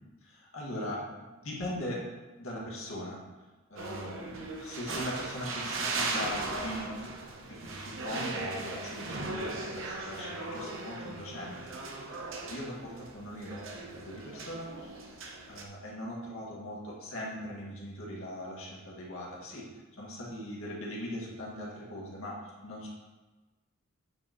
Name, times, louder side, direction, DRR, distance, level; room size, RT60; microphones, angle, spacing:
voice 1, 0.2-2.1 2.4-3.2 3.7-7.1 7.4-15.1 15.5-22.9, left 1 dB, 85° left, -4 dB, 2.0 m, -40 dB
sound 1, 3.8-15.6, right 3 dB, 65° right, 0.9 m, -38 dB
8.9 x 5.5 x 3.0 m, 1.2 s
head